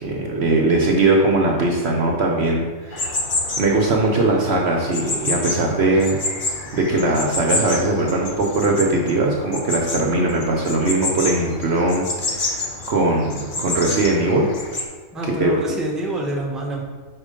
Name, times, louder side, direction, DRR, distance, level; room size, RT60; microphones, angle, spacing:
voice 1, 0.0-3.1 3.6-6.2 6.7-14.5 15.2-15.6, right 2 dB, 55° right, 0 dB, 0.9 m, -20 dB
sound 1, 2.9-14.8, left 2 dB, 45° left, 0.9 m, -28 dB
voice 2, 15.1-16.8, right 1 dB, ahead, -3 dB, 0.9 m, -26 dB
5.4 x 4.4 x 5.0 m, 1.4 s
omnidirectional pair, 1.4 m